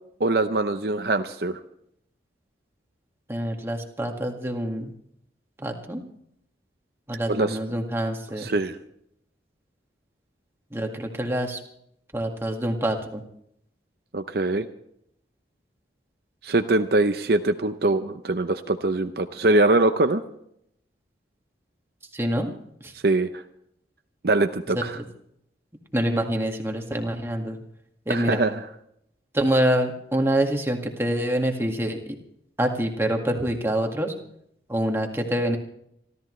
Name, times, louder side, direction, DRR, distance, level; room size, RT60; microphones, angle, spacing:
voice 1, 0.2-1.6 7.3-7.6 8.4-8.8 14.1-14.7 16.4-20.2 23.0-23.4 24.2-25.0 28.1-28.6, right 2 dB, 60° right, 8 dB, 0.7 m, -23 dB
voice 2, 3.3-4.9 5.6-6.0 7.1-8.5 10.7-11.6 12.1-13.2 22.1-22.5 22.8-22.9 24.7-25.0 25.9-27.6 28.1-28.4 29.3-32.2 32.6-34.1 34.7-35.6, right 1 dB, 15° right, 2 dB, 1.9 m, -26 dB
27.0 x 13.5 x 3.2 m, 0.72 s
head